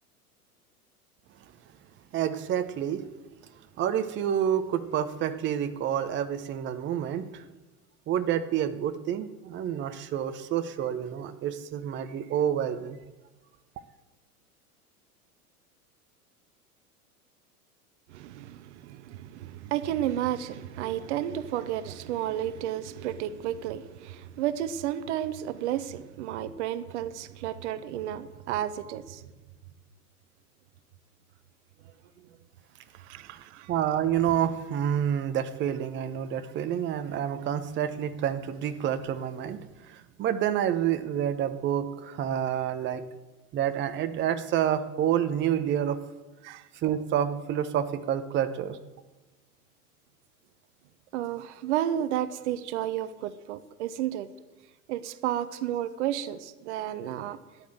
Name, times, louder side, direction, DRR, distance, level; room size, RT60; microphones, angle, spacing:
voice 1, 2.1-3.0 3.8-7.4 8.1-13.0 33.7-39.6 39.9-43.0 43.5-46.0 46.8-48.8, right 10 dB, 25° right, 0.9 m, -28 dB
voice 2, 18.1-29.2 33.1-33.7 46.4-46.6 51.1-54.3 54.9-57.4, right 11 dB, 50° right, 0.9 m, -32 dB
13.5 x 9.8 x 7.9 m
figure-of-eight pair, 90°, 46 cm